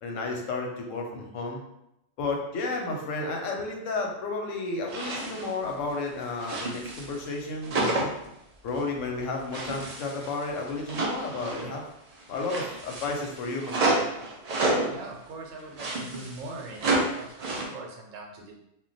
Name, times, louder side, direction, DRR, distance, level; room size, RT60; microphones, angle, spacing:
voice 1, 0.0-1.6 2.2-8.1 8.6-11.8 12.3-14.0, left 3 dB, 80° left, 1 dB, 1.0 m, -32 dB
sound 1, 4.9-5.6 5.9-7.3 7.6-8.3 8.7-8.9 9.5-11.8 12.1-15.0 15.6-17.7, right 2 dB, 55° right, 0.4 m, -30 dB
voice 2, 14.8-18.5, right 2 dB, 90° right, 0 dB, 1.0 m, -42 dB
2.2 x 2.2 x 3.8 m, 0.83 s
omnidirectional pair, 1.3 m